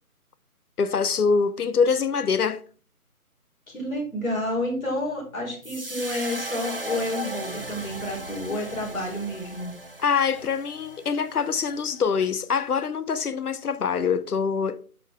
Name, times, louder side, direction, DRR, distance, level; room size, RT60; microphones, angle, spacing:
voice 1, 0.8-2.6 10.0-14.8, left 5 dB, 85° left, 0.8 m, -24 dB
voice 2, 3.7-9.7, left 1 dB, 65° left, 4.0 m, -30 dB
sound 1, 5.6-12.0, right 1 dB, 40° right, 0.5 m, -37 dB
9.8 x 5.4 x 3.6 m
figure-of-eight pair, 170°, 44 cm